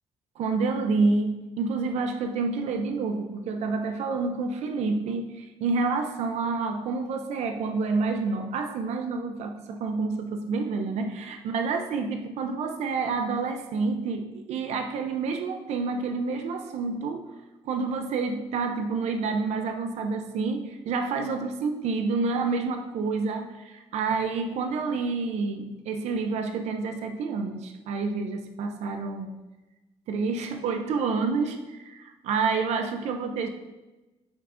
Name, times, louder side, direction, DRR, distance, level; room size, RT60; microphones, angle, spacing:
voice 1, 0.4-17.3 17.6-29.3 30.1-33.5, right 4 dB, 80° right, 6 dB, 0.5 m, -28 dB
8.4 x 4.7 x 2.5 m, 1.1 s
cardioid pair, 155°, 11 cm